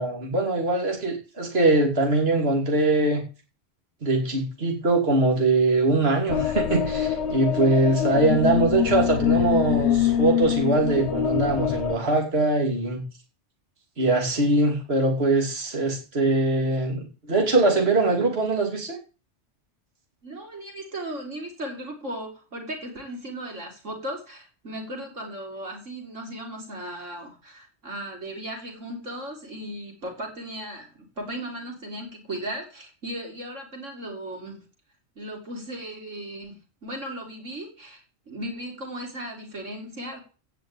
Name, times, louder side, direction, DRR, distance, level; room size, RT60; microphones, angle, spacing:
voice 1, 0.0-3.2 4.0-13.0 14.0-19.0, right 2 dB, 55° right, 1 dB, 2.9 m, -22 dB
sound 1, 6.3-12.0, left 10 dB, 70° left, 1.1 m, -24 dB
voice 2, 20.2-34.6 35.2-40.2, right 1 dB, 90° right, 2 dB, 4.0 m, -36 dB
15.5 x 5.7 x 8.9 m, 0.35 s
omnidirectional pair, 1.2 m